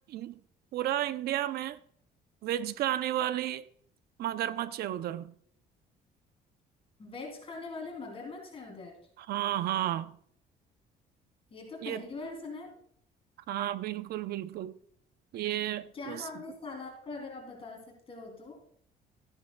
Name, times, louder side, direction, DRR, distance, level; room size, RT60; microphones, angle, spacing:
voice 1, 0.7-1.8 2.4-3.6 4.2-5.3 9.2-10.2 11.8-12.0 13.5-14.7 15.3-16.2, right 12 dB, 70° right, 0.6 m, -32 dB
voice 2, 7.0-9.0 11.5-12.7 15.9-18.6, left 3 dB, 35° left, 3.0 m, -42 dB
14.0 x 9.6 x 2.3 m
cardioid pair, 110°, 17 cm